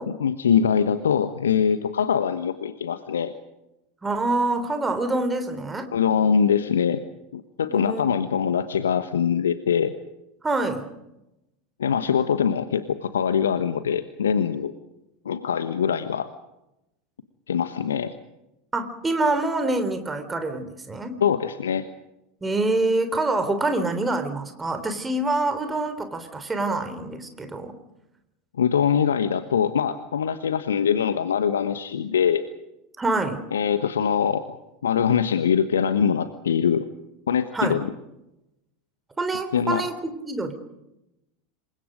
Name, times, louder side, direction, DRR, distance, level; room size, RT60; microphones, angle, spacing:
voice 1, 0.1-3.3 5.9-7.0 7.3-9.9 11.8-14.7 15.2-16.3 17.5-18.1 21.2-21.8 28.6-32.4 33.5-36.9 37.3-37.9 39.5-39.9, left 7 dB, 70° left, 11 dB, 1.2 m, -23 dB
voice 2, 4.0-5.9 7.7-8.2 10.4-10.9 18.7-21.2 22.4-27.8 33.0-33.5 37.5-37.8 39.2-40.5, right 2 dB, 15° right, 8 dB, 3.5 m, -26 dB
27.5 x 24.0 x 5.1 m, 0.90 s
figure-of-eight pair, 85°, 0 cm